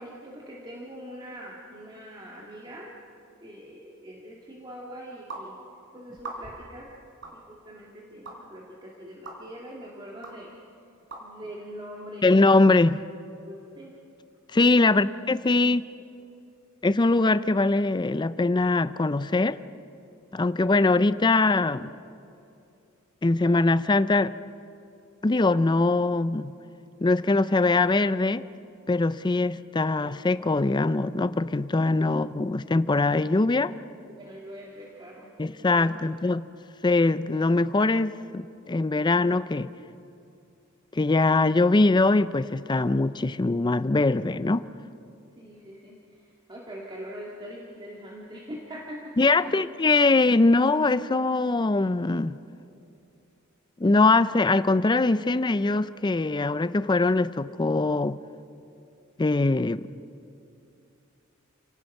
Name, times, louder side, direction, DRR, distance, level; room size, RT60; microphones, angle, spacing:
voice 1, 0.0-3.0 3.4-5.6 5.9-6.9 7.3-10.5 11.2-12.3 13.4-14.0 14.8-14.9 34.0-36.1 45.4-49.6, equal, 25° right, -3 dB, 2.0 m, -43 dB
sound 1, 5.3-5.4 6.2-6.7 7.2-7.4 8.2-8.4 9.2-9.4 10.2-10.3 11.1-11.2, right 3 dB, 60° right, 4.1 m, -39 dB
voice 2, 12.2-13.0 14.5-15.9 16.8-19.6 20.3-21.9 23.2-24.3 25.2-26.6 27.0-28.4 28.9-33.7 35.4-36.4 36.8-39.7 40.9-44.7 49.2-52.4 53.8-58.2 59.2-59.8, left 3 dB, 20° left, 15 dB, 0.5 m, -22 dB
30.0 x 18.0 x 5.4 m, 2.7 s
head